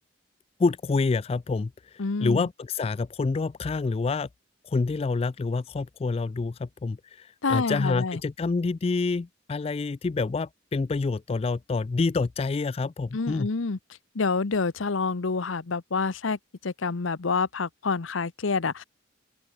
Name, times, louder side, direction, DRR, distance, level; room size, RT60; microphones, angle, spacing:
voice 1, 0.6-4.3 4.6-13.5, left 4 dB, 30° left, 0.3 m, -27 dB
voice 2, 2.0-2.5 7.4-8.2 13.1-13.8 14.1-18.8, left 4 dB, 80° left, 0.8 m, -27 dB
open air
head